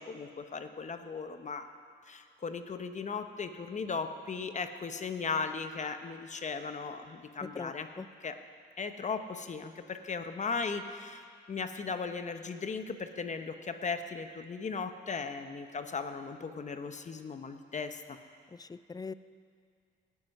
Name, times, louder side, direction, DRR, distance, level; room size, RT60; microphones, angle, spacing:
voice 1, 0.0-1.7 2.1-7.9 8.2-8.4 8.8-18.2, left 5 dB, 35° left, 8 dB, 0.9 m, -37 dB
voice 2, 7.4-8.1 18.5-19.1, left 4 dB, 20° left, 15 dB, 0.4 m, -42 dB
18.0 x 9.6 x 5.5 m, 2.2 s
cardioid pair, 90°, 20 cm